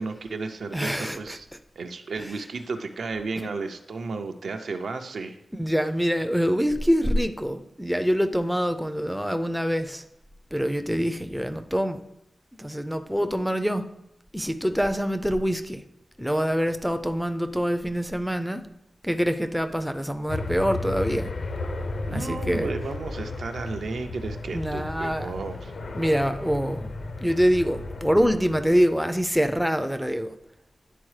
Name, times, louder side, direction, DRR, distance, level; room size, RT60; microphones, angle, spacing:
voice 1, 0.0-1.5 1.8-5.4 22.1-25.7, right 4 dB, 75° right, 7 dB, 0.5 m, -33 dB
voice 2, 0.7-1.4 2.2-2.4 3.4-3.5 5.6-10.0 10.5-12.0 12.6-13.9 14.3-15.8 16.2-18.6 19.0-21.3 22.1-22.7 24.5-25.3 25.9-26.9 27.2-30.3, equal, ahead, 7 dB, 0.3 m, -25 dB
sound 1, 20.3-29.0, left 2 dB, 60° left, 0.5 m, -34 dB
10.0 x 3.9 x 3.2 m, 0.81 s
wide cardioid pair, 145°, 0 cm